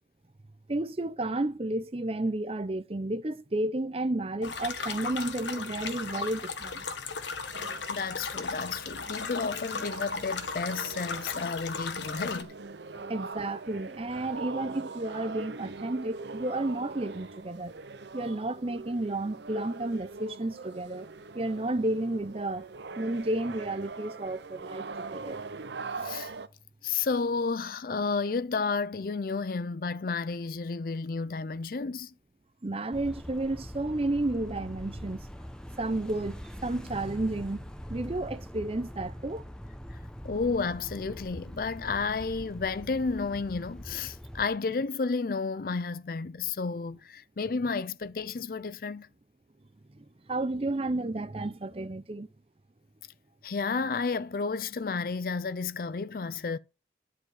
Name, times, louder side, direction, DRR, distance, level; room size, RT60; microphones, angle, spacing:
voice 1, 0.7-6.8 13.1-17.7 18.1-21.1 21.3-22.7 23.0-25.4 32.6-35.3 35.8-39.5 50.0-52.3, right 2 dB, 35° right, 0.6 m, -32 dB
sound 1, 4.4-12.4, left 5 dB, 90° left, 1.4 m, -36 dB
sound 2, 7.5-26.5, right 4 dB, 75° right, 0.7 m, -42 dB
voice 2, 7.9-12.5 12.9-13.0 26.0-26.3 26.8-32.1 40.2-49.1 53.4-56.6, left 4 dB, 50° left, 0.5 m, -31 dB
sound 3, 32.9-44.5, equal, 5° left, 0.8 m, -43 dB
11.0 x 4.9 x 8.0 m
head